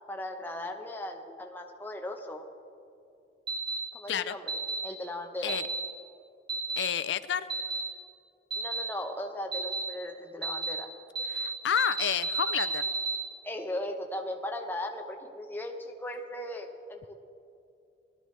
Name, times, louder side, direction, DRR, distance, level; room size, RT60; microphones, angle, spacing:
voice 1, 0.1-2.4 3.9-5.6 8.5-10.9 13.4-17.1, left 1 dB, 10° left, 2 dB, 0.9 m, -37 dB
sound 1, 3.5-3.8 4.5-4.8 5.5-5.8 6.5-6.8 7.5-7.8 8.5-8.8 9.5-9.8 10.4-10.7 11.1-11.5 11.8-13.2, right 3 dB, 30° right, 2.9 m, -31 dB
voice 2, 6.8-7.5 11.3-12.9, left 8 dB, 85° left, 13 dB, 0.4 m, -30 dB
18.0 x 12.5 x 3.3 m, 2.6 s
head